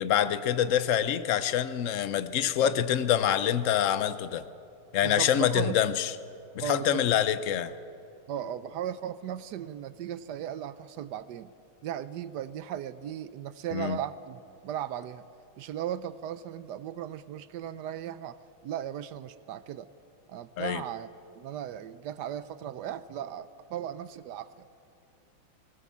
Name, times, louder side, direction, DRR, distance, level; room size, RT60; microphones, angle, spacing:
voice 1, 0.0-4.4 4.9-6.1 6.5-7.7 13.7-14.0 20.6-20.8, left 10 dB, 65° left, 13 dB, 0.8 m, -26 dB
voice 2, 2.3-2.8 5.0-5.8 6.6-7.2 8.3-11.5 11.8-15.2 15.6-18.4 18.6-19.9 20.3-21.1 21.3-24.7, right 10 dB, 70° right, 14 dB, 1.0 m, -37 dB
19.5 x 18.5 x 7.3 m, 2.6 s
omnidirectional pair, 2.2 m